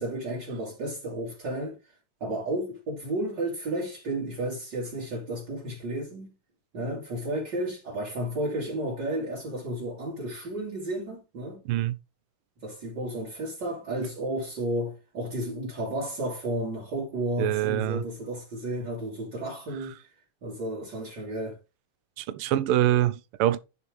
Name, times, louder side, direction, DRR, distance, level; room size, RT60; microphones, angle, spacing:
voice 1, 0.0-6.3 6.7-11.6 12.6-20.1 20.4-21.6, right 1 dB, 55° right, 3.2 m, -32 dB
voice 2, 17.4-18.0 22.2-23.6, right 13 dB, 80° right, 1.5 m, -24 dB
9.9 x 6.2 x 3.3 m
omnidirectional pair, 2.4 m